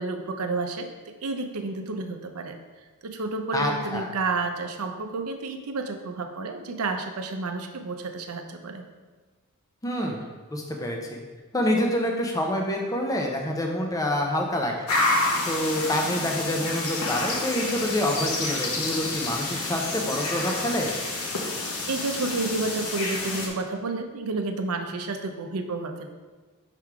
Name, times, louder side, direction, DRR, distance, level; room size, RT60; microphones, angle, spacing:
voice 1, 0.0-2.6 3.0-8.8 21.9-26.1, right 3 dB, 75° right, 6 dB, 0.6 m, -30 dB
voice 2, 3.5-4.1 9.8-10.3 10.5-11.2 11.5-14.9 15.5-21.0, left 1 dB, 15° left, 1 dB, 0.6 m, -27 dB
sound 1, 14.9-23.5, left 2 dB, 70° left, 1.0 m, -29 dB
5.8 x 3.6 x 4.7 m, 1.3 s
head